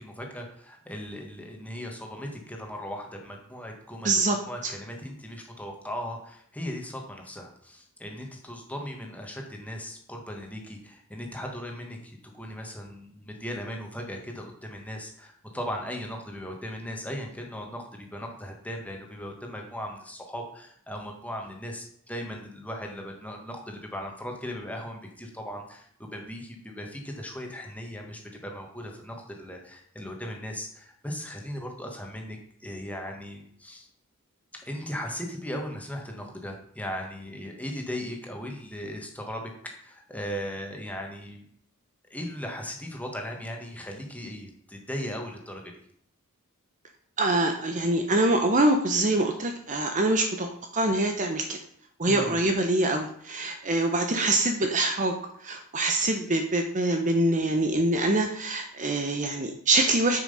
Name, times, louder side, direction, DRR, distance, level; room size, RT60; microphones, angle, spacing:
voice 1, 0.0-33.9 34.5-41.4 42.1-45.7 52.0-52.4, equal, 5° left, 1 dB, 1.7 m, -38 dB
voice 2, 4.0-4.4 4.6-4.7 47.2-51.6 52.0-55.2 55.4-60.2, right 2 dB, 35° right, 5 dB, 0.9 m, -24 dB
9.1 x 6.2 x 5.6 m, 0.64 s
head